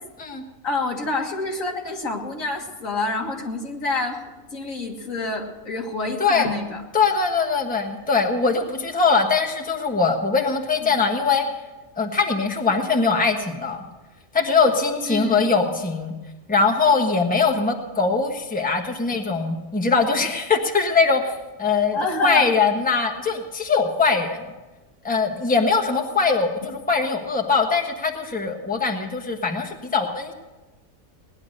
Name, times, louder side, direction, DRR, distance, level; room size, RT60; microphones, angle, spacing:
voice 1, 0.6-4.2 4.5-6.8 10.8-11.0 15.1-15.5 21.9-22.5, left 3 dB, 70° left, 1 dB, 2.2 m, -27 dB
voice 2, 6.9-11.4 12.0-13.8 14.3-16.1 16.5-24.5 25.0-30.3, left 4 dB, 5° left, 3 dB, 1.2 m, -21 dB
18.5 x 10.5 x 6.5 m, 1.1 s
omnidirectional pair, 1.5 m